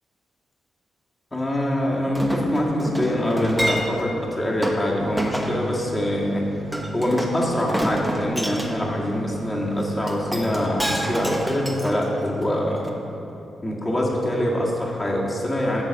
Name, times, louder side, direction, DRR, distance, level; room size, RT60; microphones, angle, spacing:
voice 1, 1.3-6.5 6.9-13.0 13.6-15.8, left 1 dB, 25° left, -4 dB, 2.0 m, -24 dB
Chink clink, 2.1-4.1 4.6-4.8 5.2-5.6 6.7-8.7 10.1-12.4 12.9-13.0, right 1 dB, 5° right, 1.3 m, -28 dB
sound 1, 5.0-11.6, right 5 dB, 35° right, 0.9 m, -37 dB
11.5 x 4.1 x 7.5 m, 2.9 s
hypercardioid pair, 45°, 0 cm